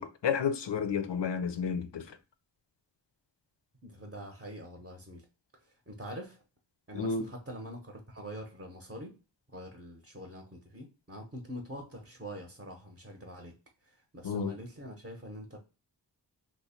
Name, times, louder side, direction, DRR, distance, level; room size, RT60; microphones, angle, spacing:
voice 1, 0.0-2.2 6.9-7.3 14.2-14.5, left 6 dB, 75° left, 0.5 m, -31 dB
voice 2, 3.8-5.2 5.6-6.4 6.9-9.2 9.5-13.5 13.8-15.6, equal, 25° right, 0.7 m, -44 dB
3.0 x 2.1 x 4.2 m
wide cardioid pair, 60°, 43 cm